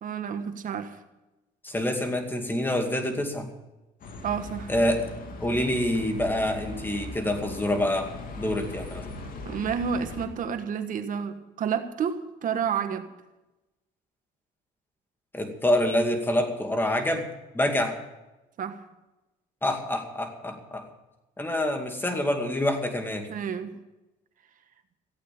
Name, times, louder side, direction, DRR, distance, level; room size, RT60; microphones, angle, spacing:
voice 1, 0.0-1.0 4.2-4.7 9.4-13.1 18.6-18.8 23.3-23.8, right 7 dB, 50° right, 8 dB, 1.4 m, -30 dB
voice 2, 1.6-3.5 4.7-5.1 5.4-8.1 8.4-9.1 15.3-17.3 17.5-18.0 19.6-20.9 21.4-23.3, left 1 dB, 10° left, 4 dB, 2.4 m, -26 dB
Bus, 4.0-10.3, left 2 dB, 55° left, 2.3 m, -39 dB
15.5 x 8.4 x 8.6 m, 1.0 s
cardioid pair, 110°, 17 cm